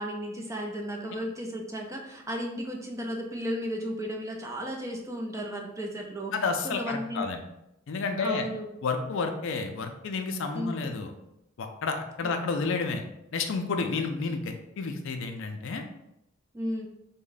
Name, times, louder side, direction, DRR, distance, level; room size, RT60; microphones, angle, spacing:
voice 1, 0.0-6.3 6.6-7.3 7.9-8.7 10.5-11.0 12.2-12.3 16.5-16.9, equal, 15° right, 0 dB, 0.5 m, -34 dB
voice 2, 6.3-7.4 7.9-8.4 8.8-11.1 11.6-13.0 13.3-15.8, left 4 dB, 65° left, 5 dB, 0.4 m, -30 dB
3.5 x 2.1 x 3.9 m, 0.85 s
head